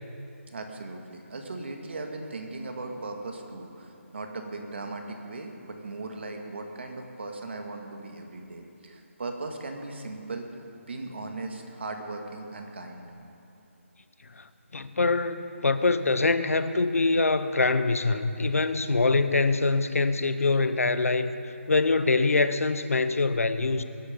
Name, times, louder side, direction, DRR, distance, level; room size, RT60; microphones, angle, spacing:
voice 1, 0.5-10.5 10.9-13.1, right 2 dB, 50° right, 3 dB, 2.1 m, -38 dB
voice 2, 14.7-21.3 21.7-23.8, left 3 dB, 85° left, 12 dB, 0.9 m, -24 dB
22.0 x 11.5 x 5.3 m, 2.8 s
hypercardioid pair, 170°, 8 cm